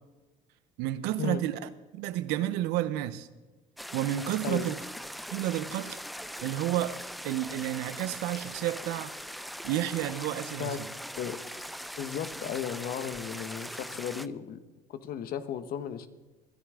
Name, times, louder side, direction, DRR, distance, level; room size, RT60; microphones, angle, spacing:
voice 1, 0.8-3.3 3.9-4.8 5.3-6.0 6.4-7.0 7.2-9.1 9.6-10.9, right 13 dB, 75° right, 0.7 m, -31 dB
sound 1, 3.8-14.3, equal, ahead, 0.4 m, -41 dB
voice 2, 12.0-14.6 14.9-16.1, left 9 dB, 60° left, 1.1 m, -35 dB
21.0 x 11.0 x 3.7 m
supercardioid pair, 90°, 17 cm